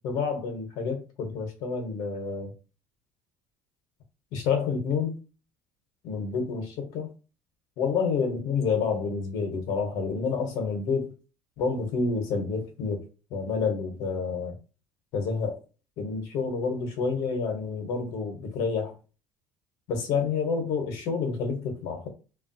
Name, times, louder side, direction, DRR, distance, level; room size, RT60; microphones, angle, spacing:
voice 1, 0.0-2.5 4.3-5.2 6.0-7.1 7.8-11.1 11.6-13.0 13.3-14.5 15.1-15.6 16.0-18.9 19.9-22.1, left 5 dB, 65° left, 0.9 m, -29 dB
3.0 x 2.3 x 2.6 m
cardioid pair, 160°, 7 cm